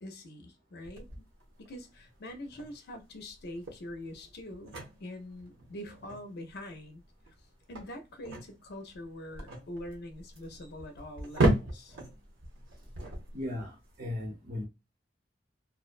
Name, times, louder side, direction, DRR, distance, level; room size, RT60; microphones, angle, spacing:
voice 1, 0.0-1.1 1.6-7.0 7.7-12.0, left 1 dB, 60° left, 0.5 m, -44 dB
sound 1, 0.8-14.0, right 1 dB, 80° right, 0.8 m, -36 dB
voice 2, 13.3-14.7, left 1 dB, 50° right, 0.7 m, -37 dB
2.4 x 2.1 x 2.4 m
head